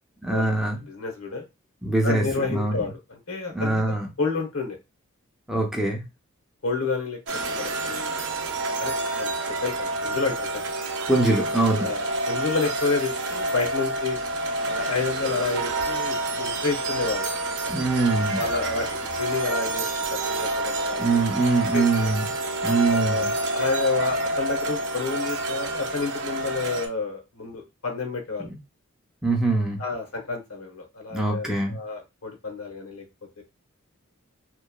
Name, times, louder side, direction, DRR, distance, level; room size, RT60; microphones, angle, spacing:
voice 1, 0.2-0.8 1.8-2.2 2.5-2.8 3.5-4.1 5.5-6.0 11.1-11.9 17.7-18.4 21.0-22.3 22.6-23.3 28.4-28.6 29.2-29.8 31.1-31.8, right 2 dB, 5° right, 0 dB, 0.4 m, -23 dB
voice 2, 0.9-1.4 2.0-4.8 6.6-7.2 7.5-8.1 8.8-9.3 9.6-10.6 11.8-14.2 14.6-17.3 18.4-18.9 19.1-21.2 21.7-22.1 22.9-28.5 29.8-33.0 33.4-33.5, left 4 dB, 85° left, 2 dB, 0.9 m, -30 dB
sound 1, 7.3-26.9, right 2 dB, 60° right, 0.5 m, -28 dB
2.9 x 2.1 x 2.2 m, 0.24 s
head